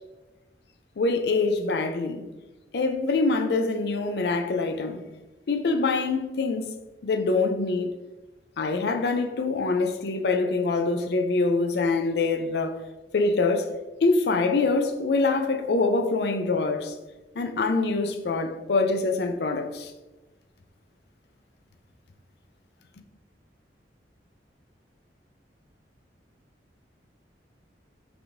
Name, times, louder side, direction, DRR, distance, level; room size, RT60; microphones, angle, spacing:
voice 1, 1.0-2.2 2.7-5.0 5.5-6.7 7.0-7.9 8.6-12.9 13.1-13.7 14.0-16.9 17.4-19.9, left 3 dB, 65° left, 0.5 m, -24 dB
5.8 x 3.5 x 2.6 m
head